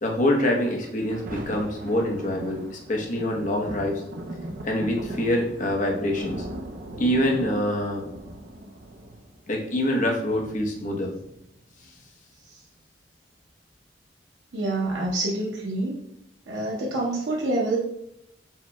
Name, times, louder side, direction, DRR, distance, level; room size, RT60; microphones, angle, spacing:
voice 1, 0.0-4.0 4.6-6.4 7.0-8.0 9.5-11.1, left 1 dB, 45° left, 1 dB, 0.8 m, -25 dB
Thunder, 0.8-11.8 12.4-12.5, right 1 dB, 50° right, 0.6 m, -39 dB
voice 2, 14.5-16.0 16.5-17.8, right 2 dB, 90° right, -3 dB, 0.7 m, -27 dB
4.8 x 2.2 x 4.3 m, 0.75 s
head